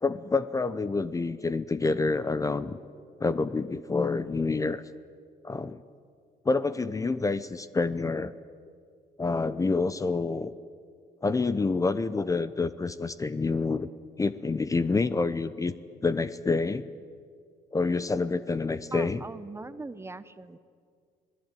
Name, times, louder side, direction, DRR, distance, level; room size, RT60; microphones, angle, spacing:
voice 1, 0.0-2.8 3.2-4.8 5.4-5.8 6.4-8.3 9.2-10.5 11.2-13.9 14.2-15.7 16.0-16.9 17.7-19.2, left 3 dB, 20° left, 14 dB, 0.7 m, -27 dB
voice 2, 18.9-20.6, right 3 dB, 15° right, 13 dB, 0.8 m, -41 dB
26.5 x 19.0 x 9.1 m, 2.2 s
cardioid pair, 110°, 17 cm